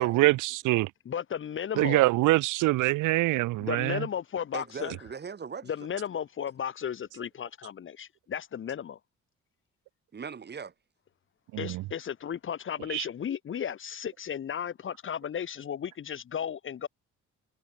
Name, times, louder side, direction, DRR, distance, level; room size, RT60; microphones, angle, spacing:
voice 1, 0.0-0.9 1.8-4.1 11.5-11.8 12.9-13.1, right 19 dB, 90° right, 0.6 m, -24 dB
voice 2, 1.1-2.0 3.6-5.0 5.6-9.0 11.6-16.9, left 8 dB, 40° left, 0.8 m, -34 dB
voice 3, 4.5-5.7 10.1-10.7, right 6 dB, 35° right, 1.5 m, -39 dB
cardioid pair, 90°, 30 cm